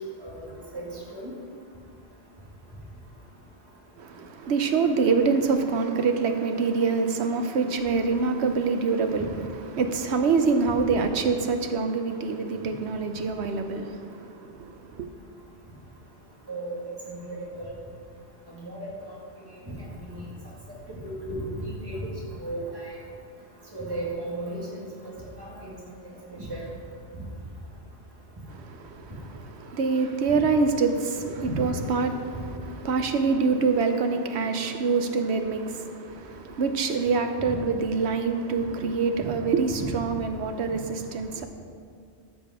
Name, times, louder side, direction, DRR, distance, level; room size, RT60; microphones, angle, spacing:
voice 1, 0.7-1.3 16.5-16.8 17.1-17.7 18.5-19.2 20.1-20.2 21.0-22.1 22.4-23.0 23.7-24.6 25.0-25.1 25.4-25.7 26.0-26.6 31.5-31.6 39.7-39.8, right 1 dB, 20° right, 2.0 m, -35 dB
voice 2, 4.0-15.1 28.5-41.5, right 4 dB, 80° right, 1.0 m, -26 dB
13.0 x 5.3 x 4.9 m
omnidirectional pair, 1.1 m